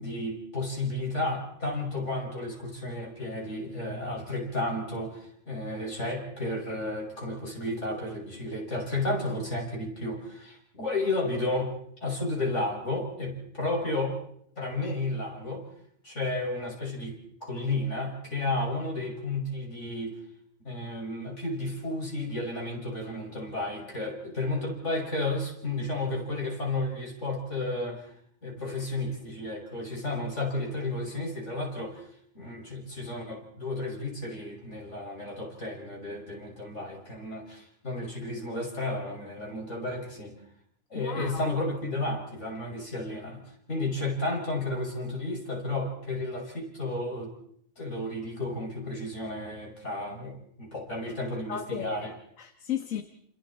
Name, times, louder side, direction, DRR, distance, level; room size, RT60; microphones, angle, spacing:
voice 1, 0.0-11.7 12.0-14.2 14.6-15.6 16.0-20.2 20.6-28.1 28.4-32.1 32.3-40.4 40.9-43.4 43.7-47.3 47.8-52.1, left 2 dB, 60° left, -1 dB, 6.8 m, -32 dB
voice 2, 40.9-41.5 51.5-53.0, left 9 dB, 80° left, 7 dB, 1.7 m, -35 dB
29.0 x 27.5 x 4.4 m, 0.69 s
omnidirectional pair, 1.4 m